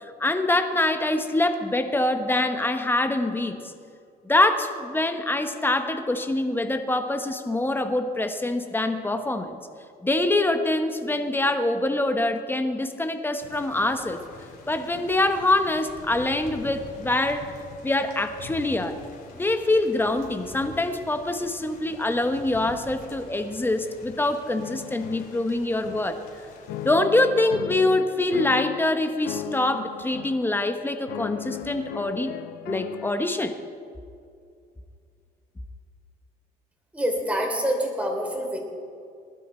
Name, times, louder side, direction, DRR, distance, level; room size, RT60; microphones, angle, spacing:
voice 1, 0.2-3.7 4.2-9.6 10.0-14.2 14.7-17.5 17.8-19.0 19.3-26.2 26.8-32.3 32.7-33.5, left 2 dB, 10° left, 7 dB, 1.1 m, -24 dB
Thunder / Rain, 13.4-26.9, left 4 dB, 65° left, 3.5 m, -46 dB
sound 1, 24.6-26.3 26.7-28.9 29.2-30.5 31.1-33.1, left 12 dB, 85° left, 0.6 m, -37 dB
voice 2, 36.9-38.6, equal, 10° right, 1 dB, 3.3 m, -26 dB
20.5 x 12.0 x 4.4 m, 2.4 s
cardioid pair, 110°, 17 cm